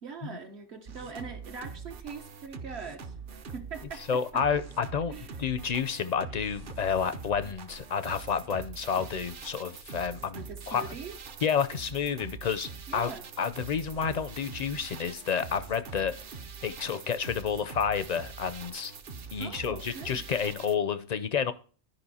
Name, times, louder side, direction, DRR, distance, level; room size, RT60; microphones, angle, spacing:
voice 1, 0.0-4.4 5.1-5.4 10.3-11.2 12.9-13.3 19.4-20.2, right 5 dB, 70° right, 1.2 m, -42 dB
sound 1, 0.9-20.8, right 5 dB, 55° right, 0.8 m, -44 dB
voice 2, 4.1-5.1 5.4-10.9 11.4-13.1 13.4-16.2 16.6-18.9 19.3-21.5, left 6 dB, 50° left, 0.5 m, -30 dB
12.0 x 5.2 x 4.1 m
omnidirectional pair, 1.2 m